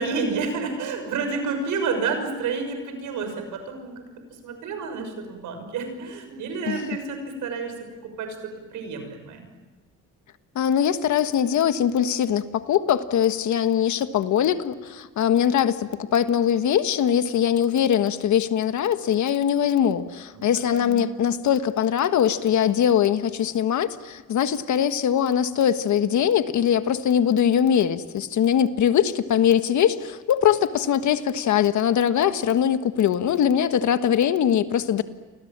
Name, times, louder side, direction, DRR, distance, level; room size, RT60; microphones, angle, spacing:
voice 1, 0.0-4.0 4.4-7.7 8.0-9.5 20.3-21.0, right 4 dB, 85° right, 6 dB, 6.3 m, -30 dB
voice 2, 10.5-35.0, left 9 dB, 70° left, 10 dB, 1.6 m, -22 dB
30.0 x 24.5 x 7.5 m, 1.3 s
cardioid pair, 90°, 30 cm